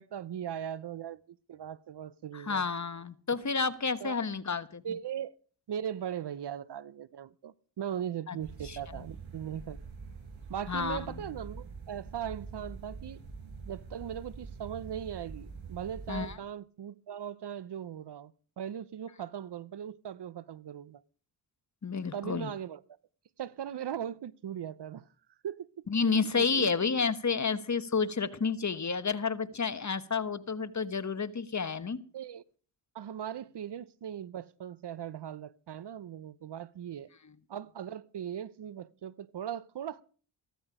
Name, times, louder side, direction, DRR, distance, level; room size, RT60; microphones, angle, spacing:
voice 1, 0.0-2.7 4.0-4.1 4.8-5.4 5.7-9.8 10.5-13.2 13.7-21.0 22.1-22.8 23.4-25.1 25.4-25.7 26.3-26.8 32.1-32.4 32.9-37.1 37.5-40.0, right 9 dB, 55° right, 0.8 m, -39 dB
voice 2, 2.3-4.8 8.3-8.4 8.6-8.8 10.7-11.1 16.1-16.4 21.8-22.5 25.9-32.0, left 5 dB, 35° left, 1.2 m, -30 dB
sound 1, 8.4-16.3, right 4 dB, 75° right, 6.4 m, -45 dB
15.0 x 13.5 x 4.9 m
cardioid pair, 50°, 48 cm